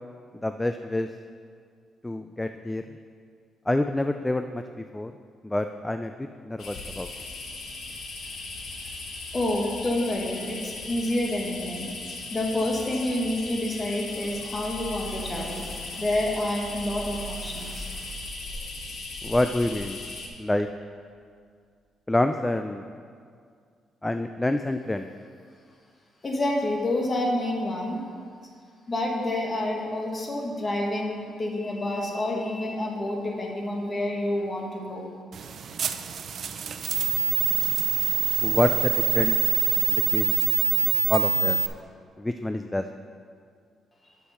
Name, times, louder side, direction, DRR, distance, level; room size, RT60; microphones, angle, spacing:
voice 1, 0.4-1.1 2.0-2.8 3.7-5.1 5.4-7.1 19.2-20.0 20.4-20.7 22.1-22.8 24.0-25.1 38.4-39.4 39.9-40.3 41.1-41.6 42.2-42.8, left 1 dB, 10° left, 7 dB, 0.3 m, -27 dB
sound 1, 6.6-20.3, left 3 dB, 65° left, 1.3 m, -38 dB
voice 2, 9.3-11.9 12.3-17.8 26.2-28.0 28.9-35.0, left 1 dB, 30° left, 0 dB, 1.5 m, -28 dB
sound 2, 14.1-20.6 21.1-21.2, right 3 dB, 30° right, 0.8 m, -43 dB
sound 3, 35.3-41.7, right 8 dB, 60° right, 0.4 m, -25 dB
7.1 x 6.5 x 5.6 m, 2.2 s
cardioid pair, 90°, 0 cm